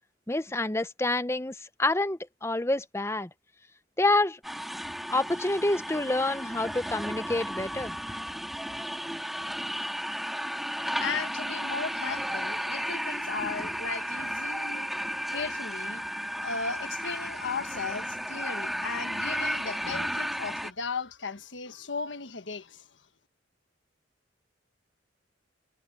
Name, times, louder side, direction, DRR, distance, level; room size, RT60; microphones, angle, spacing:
voice 1, 0.3-3.3 4.0-4.4 5.1-8.0, left 2 dB, 15° left, 0.7 m, -27 dB
sound 1, 4.4-20.7, equal, ahead, 3.0 m, -34 dB
voice 2, 10.9-14.9 15.3-16.0 16.3-22.9, left 5 dB, 75° left, 1.3 m, -36 dB
head